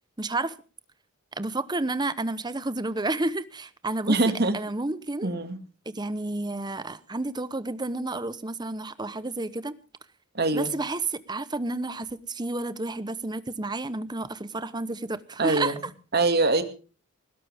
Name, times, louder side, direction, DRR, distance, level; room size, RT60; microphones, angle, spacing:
voice 1, 0.2-0.6 1.4-4.2 4.5-5.3 5.9-9.8 10.5-15.8, right 2 dB, 20° right, 0.9 m, -31 dB
voice 2, 4.1-4.5 5.2-5.6 10.3-10.7 15.4-15.8 16.1-16.6, right 2 dB, 50° right, 2.2 m, -23 dB
20.0 x 16.5 x 3.5 m
head